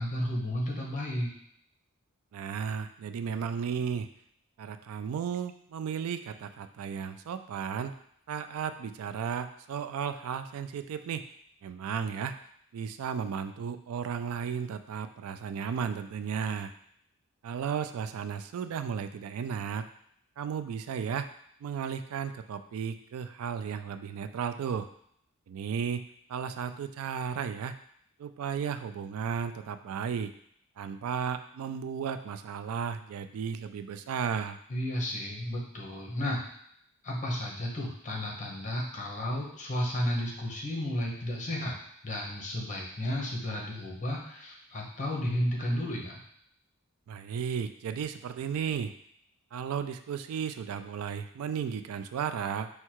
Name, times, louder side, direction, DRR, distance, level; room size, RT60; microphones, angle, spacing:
voice 1, 0.0-1.3 34.7-36.4 37.0-41.8 42.0-46.2, left 1 dB, 35° left, -1 dB, 0.9 m, -33 dB
voice 2, 2.3-4.1 4.6-7.9 8.3-11.3 11.6-12.3 12.7-16.7 17.4-19.9 20.4-21.3 21.6-24.9 25.5-26.0 26.3-27.8 28.2-30.3 30.8-34.6 47.1-48.9 49.5-52.7, right 7 dB, 70° right, 9 dB, 0.3 m, -34 dB
4.6 x 2.3 x 4.5 m, 0.69 s
head